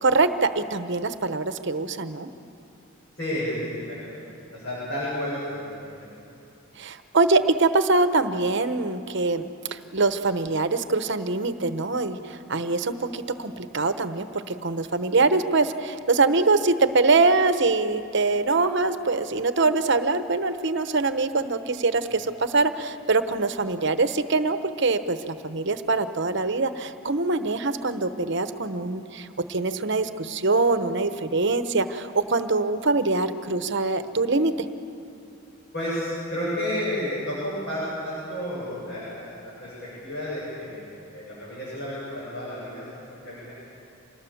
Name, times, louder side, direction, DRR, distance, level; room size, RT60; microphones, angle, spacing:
voice 1, 0.0-2.3 6.8-9.4 9.7-34.7, right 3 dB, 60° right, 10 dB, 1.0 m, -24 dB
voice 2, 3.2-4.2 4.5-6.1 35.7-43.5, left 1 dB, 55° left, -9 dB, 7.9 m, -32 dB
26.5 x 20.0 x 7.2 m, 2.7 s
head